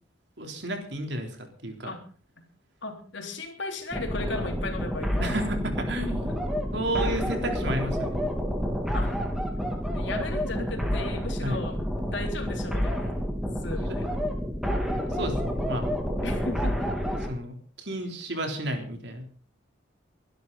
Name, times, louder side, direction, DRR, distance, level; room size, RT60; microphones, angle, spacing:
voice 1, 0.4-1.9 5.2-6.3 6.7-8.2 11.4-11.6 15.1-15.9 17.3-19.2, right 1 dB, 60° right, 4 dB, 3.7 m, -32 dB
voice 2, 2.8-5.4 8.9-9.1 9.9-13.2 13.6-14.2 16.2-16.9, left 2 dB, 70° left, 3 dB, 3.7 m, -36 dB
sound 1, 3.9-17.3, equal, ahead, 2.7 m, -29 dB
23.5 x 12.0 x 4.2 m, 0.42 s
head